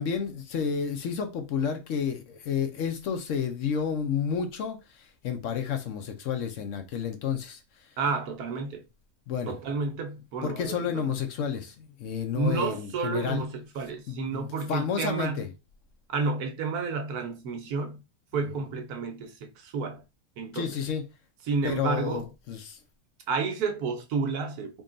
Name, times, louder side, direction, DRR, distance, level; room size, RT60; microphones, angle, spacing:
voice 1, 0.0-7.6 9.3-9.6 10.4-13.4 14.1-15.5 20.5-21.0 21.6-22.8, left 7 dB, 65° left, 0.9 m, -31 dB
voice 2, 8.0-8.8 9.5-11.1 12.3-15.5 16.1-18.0 18.3-20.0 20.4-20.7 21.5-22.3 23.3-24.8, right 4 dB, 80° right, 1.3 m, -31 dB
3.7 x 2.3 x 3.7 m
omnidirectional pair, 1.6 m